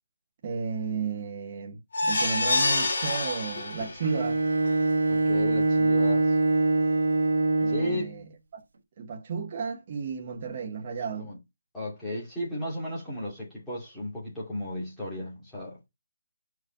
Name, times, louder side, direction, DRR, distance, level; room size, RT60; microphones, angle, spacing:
voice 1, 0.4-4.4 7.5-8.2 8.5-8.6 9.0-11.3, right 5 dB, 25° right, 0.9 m, -33 dB
sound 1, 1.9-4.2 4.6-4.7 5.1-5.2, left 2 dB, 40° left, 2.5 m, -27 dB
Bowed string instrument, 4.0-8.2, right 2 dB, 60° right, 1.4 m, -24 dB
voice 2, 5.0-6.4 7.7-8.2 11.2-11.4 11.7-15.8, left 1 dB, 5° left, 2.3 m, -35 dB
5.0 x 4.7 x 5.2 m
hypercardioid pair, 180°, 0 cm